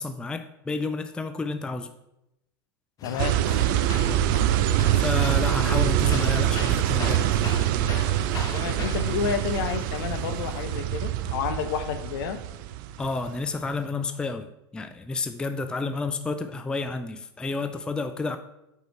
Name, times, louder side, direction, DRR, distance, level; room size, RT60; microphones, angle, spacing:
voice 1, 0.0-1.9 4.9-7.4 13.0-18.4, left 3 dB, 5° left, 9 dB, 0.3 m, -30 dB
voice 2, 3.0-3.4 8.5-12.4, left 7 dB, 65° left, 10 dB, 0.7 m, -30 dB
sound 1, 3.0-10.6, left 5 dB, 30° left, 0.7 m, -39 dB
sound 2, 3.2-13.3, right 12 dB, 55° right, 0.4 m, -24 dB
5.1 x 4.9 x 4.5 m, 0.87 s
hypercardioid pair, 110°, 13 cm